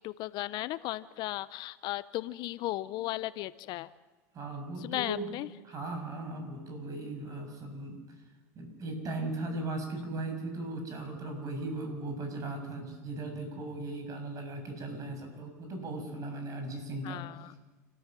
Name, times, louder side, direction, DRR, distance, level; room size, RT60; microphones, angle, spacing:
voice 1, 0.0-3.9 4.8-5.5 17.0-17.6, left 16 dB, 55° left, 16 dB, 0.7 m, -36 dB
voice 2, 4.3-5.3 5.6-8.0 8.6-17.2, right 2 dB, 40° right, 5 dB, 6.9 m, -37 dB
29.0 x 13.5 x 7.5 m, 1.2 s
supercardioid pair, 105°, 9 cm